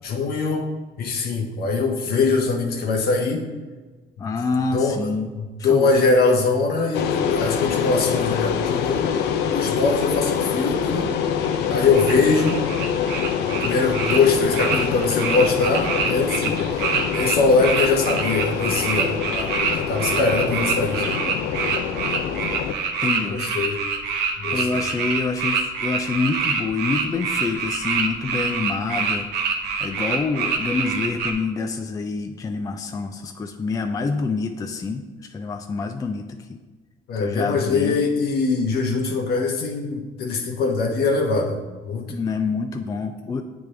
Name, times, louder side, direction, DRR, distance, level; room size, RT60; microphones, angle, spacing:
voice 1, 0.0-0.6 1.0-3.4 4.2-4.3 4.7-5.0 5.3-9.1 9.5-11.1 11.7-12.6 13.4-21.2 23.2-23.8 24.4-24.9 37.1-42.2, left 4 dB, 65° left, 2 dB, 1.1 m, -22 dB
voice 2, 4.2-5.3 5.7-5.9 23.0-23.4 24.5-36.6 37.2-38.0 42.1-43.4, left 4 dB, 20° left, 5 dB, 0.4 m, -27 dB
sound 1, 6.9-22.7, left 7 dB, 85° left, 0.5 m, -25 dB
sound 2, 11.4-31.3, right 5 dB, 85° right, 0.8 m, -26 dB
8.7 x 3.5 x 3.3 m, 1.3 s
cardioid pair, 110°, 17 cm